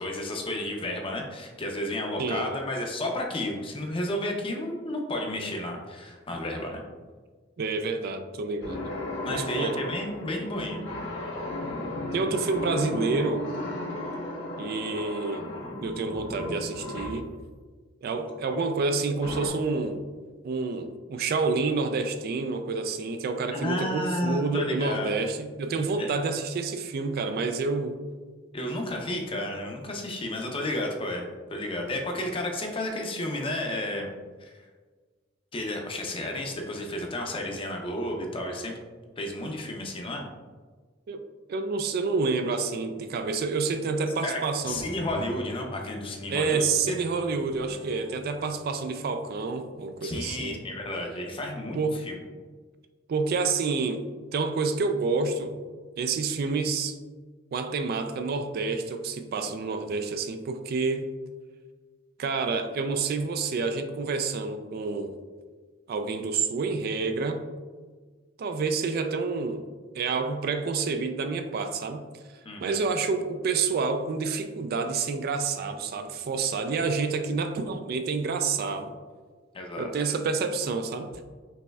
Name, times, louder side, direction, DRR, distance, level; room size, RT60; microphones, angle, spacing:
voice 1, 0.0-6.8 9.2-10.8 18.4-18.6 23.5-25.2 26.0-26.1 28.5-34.1 34.4-34.5 35.5-38.7 39.2-40.3 44.2-44.4 44.7-47.0 50.0-52.2 72.4-72.8 79.5-79.9, left 1 dB, 30° left, 2 dB, 0.6 m, -32 dB
voice 2, 7.6-8.9 9.3-9.9 12.1-13.5 14.6-15.5 15.8-17.3 18.0-20.0 20.4-28.0 41.1-41.2 41.5-44.8 46.3-50.6 51.7-52.1 53.1-54.0 54.3-55.5 56.0-56.9 57.5-61.1 62.2-65.1 65.9-67.4 68.4-69.6 69.9-72.0 72.6-78.9 79.8-81.1, right 4 dB, 55° right, 8 dB, 0.3 m, -28 dB
sound 1, 8.6-17.3 19.2-19.5, left 1 dB, 90° left, 1.1 m, -35 dB
sound 2, 44.6-50.8, left 1 dB, 85° right, 1.0 m, -45 dB
5.3 x 3.1 x 2.3 m, 1.4 s
head